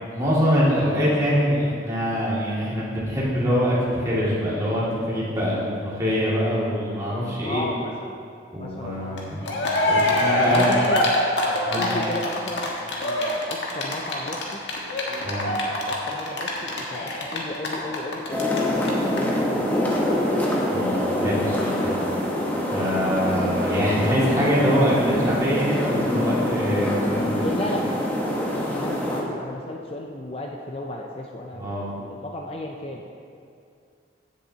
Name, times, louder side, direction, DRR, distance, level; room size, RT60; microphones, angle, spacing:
voice 1, 0.0-7.7 8.5-9.5 9.9-10.8 11.7-11.9 15.2-15.5 20.7-21.9 22.7-27.5 31.5-31.9, equal, 20° right, -8 dB, 2.2 m, -24 dB
voice 2, 7.4-8.1 8.6-9.2 10.4-11.1 11.4-12.7 13.0-14.6 15.1-19.8 27.0-28.0 28.4-33.1, left 1 dB, 30° left, 1 dB, 0.5 m, -34 dB
Cheering, 9.2-9.3 9.4-18.6 18.8-18.9 19.2-19.3, left 1 dB, 80° left, 1.4 m, -24 dB
sound 1, 18.3-29.2, left 1 dB, 10° left, 1.0 m, -25 dB
15.5 x 7.0 x 2.9 m, 2.4 s
head